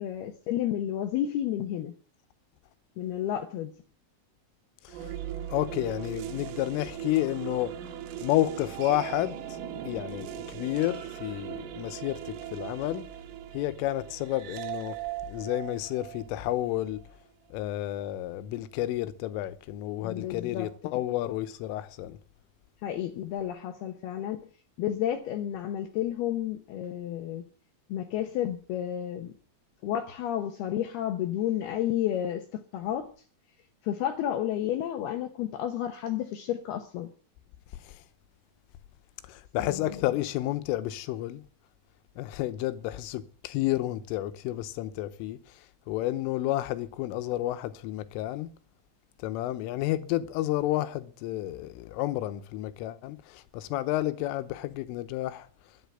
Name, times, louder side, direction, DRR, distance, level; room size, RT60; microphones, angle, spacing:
voice 1, 0.0-1.9 3.0-3.7 20.0-20.7 22.8-24.5 24.8-27.5 27.9-29.3 29.8-33.1 33.8-37.1 39.6-40.0, left 11 dB, 75° left, 2.5 m, -31 dB
sound 1, 4.9-17.1, right 10 dB, 85° right, 3.9 m, -39 dB
voice 2, 5.5-7.8 8.2-9.6 9.9-13.1 13.5-15.0 15.3-17.0 17.5-22.2 37.9-38.0 39.3-41.4 42.2-45.6 45.9-48.5 49.2-55.5, left 15 dB, 90° left, 3.5 m, -31 dB
12.0 x 10.5 x 9.2 m
omnidirectional pair, 5.6 m